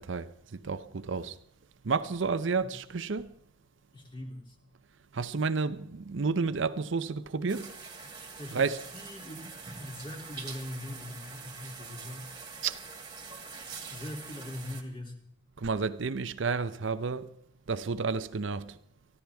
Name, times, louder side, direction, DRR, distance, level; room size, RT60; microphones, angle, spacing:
voice 1, 0.0-1.4 1.8-3.3 5.1-7.8 8.5-8.8 12.6-12.8 15.6-17.3 17.7-18.8, right 4 dB, 70° right, 0.6 m, -31 dB
voice 2, 3.9-4.6 8.4-12.3 13.9-15.2, left 1 dB, 25° left, 2.9 m, -42 dB
sound 1, 7.5-14.8, right 4 dB, 25° right, 2.0 m, -44 dB
24.0 x 14.5 x 3.5 m
head